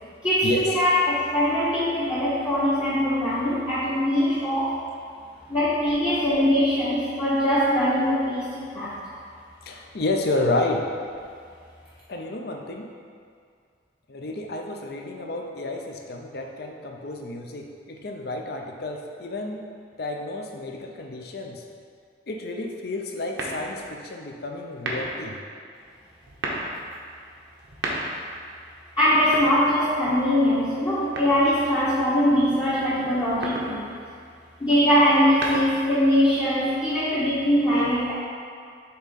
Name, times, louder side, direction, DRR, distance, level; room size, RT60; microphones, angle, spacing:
voice 1, 0.2-4.7 5.5-8.9 29.0-33.9 34.6-38.1, equal, 25° left, -11 dB, 0.9 m, -22 dB
voice 2, 9.6-10.9 12.1-12.9 14.1-19.6 20.0-21.6 22.3-25.4, left 2 dB, 55° left, 2 dB, 0.6 m, -30 dB
sound 1, 23.3-24.0 24.7-25.3 26.2-26.7 27.6-28.4 29.2-30.1 31.2-31.8 33.2-33.8 35.1-36.0, right 1 dB, 85° right, 0.9 m, -32 dB
6.8 x 3.6 x 4.2 m, 2.2 s
head